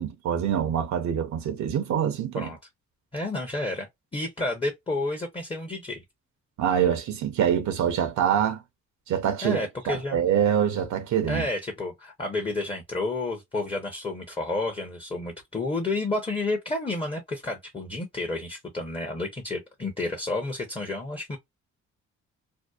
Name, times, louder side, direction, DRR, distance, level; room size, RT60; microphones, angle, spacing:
voice 1, 0.0-2.5 6.6-8.6 9.1-9.6 9.9-11.5, right 9 dB, 70° right, 0.6 m, -25 dB
voice 2, 3.1-3.9 4.1-6.0 9.4-10.2 11.3-21.4, left 2 dB, 20° left, 0.7 m, -30 dB
2.7 x 2.0 x 2.3 m
cardioid pair, 90°, 30 cm